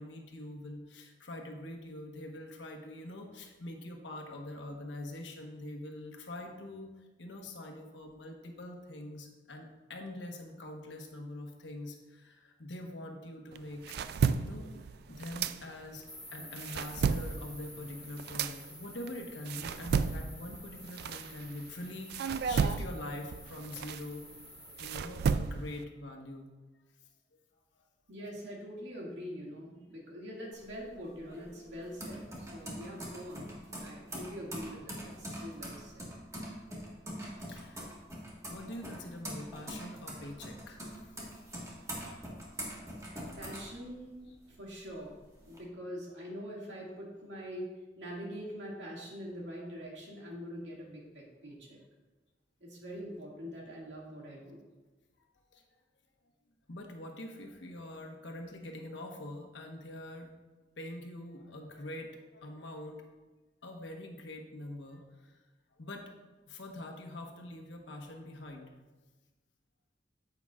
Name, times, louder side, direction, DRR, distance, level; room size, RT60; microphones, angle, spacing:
voice 1, 0.0-6.9 7.2-13.9 14.3-16.0 16.3-24.2 24.8-26.5 27.7-27.8 37.5-37.9 38.5-40.8 41.2-41.3 55.5-55.6 56.7-60.3 60.8-63.0 63.6-65.4 65.8-66.1 66.5-68.7, left 1 dB, 85° left, 2 dB, 1.2 m, -44 dB
sound 1, 13.5-16.1 16.4-21.7 22.1-25.8, right 6 dB, 60° right, 0.3 m, -33 dB
sound 2, 16.1-25.0, left 1 dB, 5° left, 0.4 m, -51 dB
voice 2, 28.1-36.1 43.4-45.1 45.4-47.7 48.0-51.8 52.6-54.6, equal, 80° right, -3 dB, 2.1 m, -44 dB
sound 3, 30.5-44.4 44.7-45.6, equal, 15° right, 1.6 m, -43 dB
9.4 x 8.0 x 2.4 m, 1.2 s
head